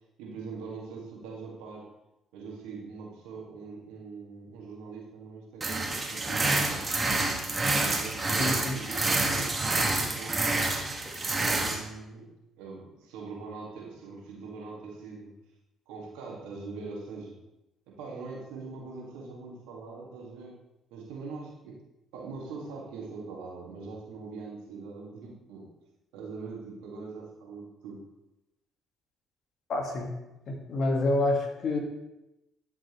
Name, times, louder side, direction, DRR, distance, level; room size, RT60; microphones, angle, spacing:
voice 1, 0.2-1.9 2.3-6.9 7.7-10.5 11.4-15.4 15.9-17.4 17.9-20.6 20.9-21.7 22.1-25.7 26.1-28.0, right 4 dB, 75° right, -3 dB, 2.0 m, -42 dB
sound 1, 5.6-11.8, right 2 dB, 30° right, 1.7 m, -28 dB
voice 2, 8.4-8.8 29.7-30.1 30.5-31.8, left 2 dB, 55° left, 2 dB, 1.7 m, -28 dB
11.5 x 6.1 x 3.1 m, 0.95 s
hypercardioid pair, 50°, 0 cm